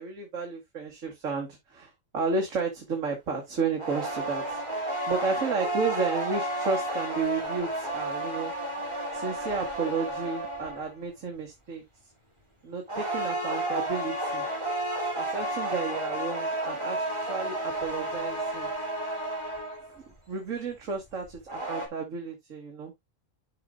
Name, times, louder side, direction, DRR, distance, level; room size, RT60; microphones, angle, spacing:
voice 1, 0.0-4.6 5.1-8.5 9.1-11.8 12.6-14.4 15.1-18.7 19.9-22.9, right 4 dB, 75° right, 2.0 m, -32 dB
sound 1, 3.8-10.9 12.9-20.0 21.2-21.9, right 1 dB, 20° right, 2.8 m, -32 dB
11.5 x 5.4 x 2.3 m
omnidirectional pair, 1.3 m